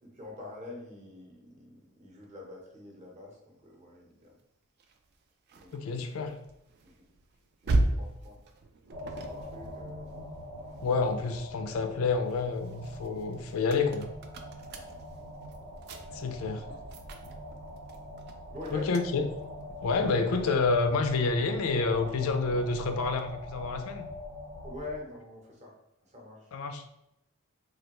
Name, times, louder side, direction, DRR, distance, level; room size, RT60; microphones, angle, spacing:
voice 1, 0.0-4.4 5.5-6.2 6.8-7.1 7.6-8.4 9.0-10.2 10.6-10.9 14.7-15.0 16.3-16.8 18.5-18.9 22.0-22.3 24.6-25.8 26.0-26.5, left 2 dB, 35° right, -1 dB, 0.8 m, -46 dB
sound 1, 4.8-11.3 11.8-21.6, right 2 dB, 50° right, 0.3 m, -38 dB
voice 2, 5.7-6.3 10.8-14.1 16.1-16.7 18.7-19.3 19.8-24.1 26.5-26.9, left 4 dB, 75° left, 7 dB, 0.4 m, -28 dB
sound 2, 8.9-25.0, left 1 dB, 75° right, 0.7 m, -44 dB
3.2 x 2.3 x 2.9 m, 0.84 s
head